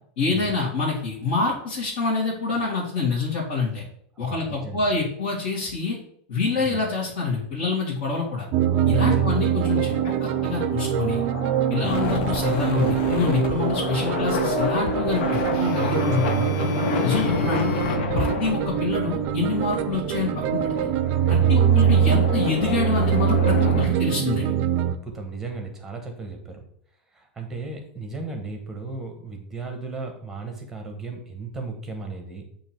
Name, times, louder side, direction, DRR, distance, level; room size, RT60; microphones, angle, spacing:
voice 1, 0.2-3.8 4.2-6.0 6.3-8.5 8.8-11.2 11.7-16.5 17.0-17.7 18.1-20.9 21.3-24.5, left 4 dB, 55° left, -8 dB, 2.0 m, -26 dB
voice 2, 4.2-4.9 6.6-6.8 9.0-9.4 11.7-12.0 17.1-17.4 21.4-21.6 23.8-23.9 24.8-26.6 27.1-32.4, right 3 dB, 5° right, 4 dB, 1.0 m, -36 dB
sound 1, 8.5-25.0, right 9 dB, 40° right, 0.4 m, -23 dB
sound 2, 9.6-23.9, left 5 dB, 80° left, 0.9 m, -30 dB
sound 3, 11.8-18.0, left 6 dB, 40° left, 0.7 m, -34 dB
8.2 x 2.9 x 4.4 m, 0.65 s
supercardioid pair, 170°, 6 cm